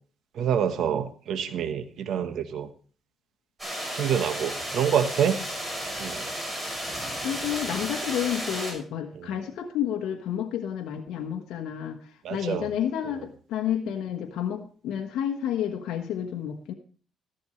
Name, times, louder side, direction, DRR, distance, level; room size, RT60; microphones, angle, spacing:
voice 1, 0.4-2.7 3.9-5.4 6.0-6.2 12.2-12.7, right 8 dB, 75° right, 8 dB, 1.1 m, -26 dB
sound 1, 3.6-8.7, equal, 10° right, 6.0 m, -33 dB
voice 2, 7.2-16.7, left 9 dB, 85° left, 3 dB, 1.2 m, -30 dB
14.0 x 11.5 x 3.2 m, 0.42 s
cardioid pair, 90°, 0 cm